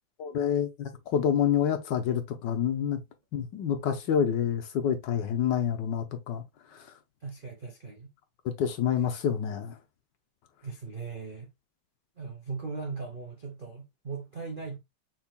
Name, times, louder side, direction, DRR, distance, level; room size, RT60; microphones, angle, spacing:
voice 1, 0.2-3.0 3.3-6.4 6.7-6.8 8.4-9.7, left 8 dB, 70° left, 1.2 m, -28 dB
voice 2, 7.2-8.1 10.6-11.5 12.2-14.8, right 4 dB, 65° right, 0.5 m, -38 dB
5.9 x 3.7 x 2.3 m
omnidirectional pair, 2.3 m